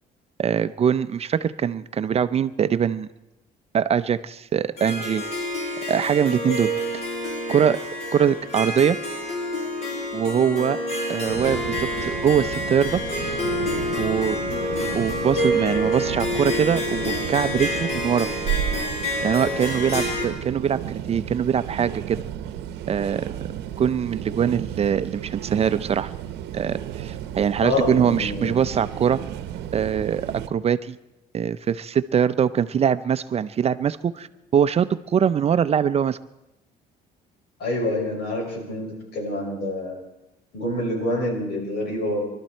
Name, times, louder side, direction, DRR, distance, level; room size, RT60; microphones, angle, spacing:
voice 1, 0.4-3.1 3.7-5.2 5.9-6.7 7.5-7.8 8.1-9.0 10.1-10.8 11.1-13.0 14.0-14.4 14.9-18.3 19.2-22.2 22.9-23.2 23.8-26.1 26.5-29.2 29.7-31.0 31.3-34.3 34.5-36.2, right 8 dB, 40° right, 13 dB, 0.5 m, -22 dB
Harp, 4.8-20.3, left 1 dB, 40° left, 4.2 m, -28 dB
sound 1, 11.3-30.5, right 11 dB, 85° right, 0.8 m, -33 dB
voice 2, 27.6-28.6 37.6-39.9 40.5-42.2, left 1 dB, 70° left, 0 dB, 6.3 m, -27 dB
24.0 x 12.5 x 4.4 m, 0.95 s
cardioid pair, 110°, 17 cm